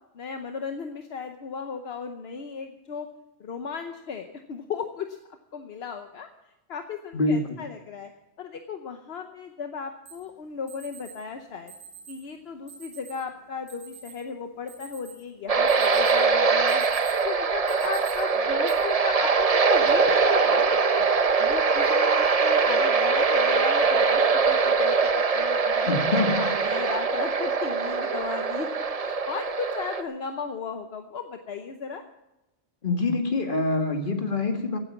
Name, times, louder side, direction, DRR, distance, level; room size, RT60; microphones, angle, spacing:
voice 1, 0.1-3.1 3.4-5.2 5.5-6.3 6.7-8.1 8.4-11.7 12.1-16.9 17.2-21.1 21.4-25.0 25.3-28.7 29.0-32.0, left 6 dB, 75° left, 6 dB, 1.1 m, -36 dB
voice 2, 7.1-7.6 25.9-26.4 32.8-34.8, left 2 dB, 50° left, 4 dB, 2.0 m, -25 dB
Alarm, 10.1-10.2 10.7-11.1 11.7-12.2 12.7-13.2 13.7-14.1 14.5-15.3 15.7-16.2 16.5-17.2 17.7-18.1 18.7-18.8 19.5-19.9, right 6 dB, 35° left, 5.4 m, -46 dB
sound 1, 15.5-30.0, right 4 dB, 40° right, 0.8 m, -22 dB
16.0 x 9.0 x 7.1 m, 0.96 s
omnidirectional pair, 1.1 m